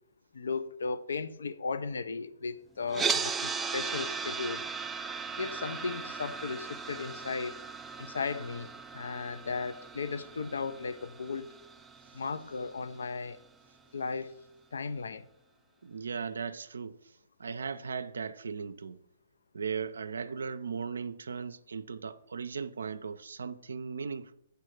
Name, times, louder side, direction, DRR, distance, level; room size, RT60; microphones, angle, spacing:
voice 1, 0.3-4.6 5.4-7.6 8.0-11.5 12.1-13.4 13.9-14.3 14.7-15.3, left 4 dB, 75° left, 0.4 m, -36 dB
sound 1, 2.9-13.0, right 5 dB, 10° right, 0.4 m, -37 dB
voice 2, 15.8-17.0 17.4-19.0 19.5-24.3, right 5 dB, 75° right, 0.4 m, -37 dB
8.0 x 3.3 x 6.4 m
hypercardioid pair, 130°, 0 cm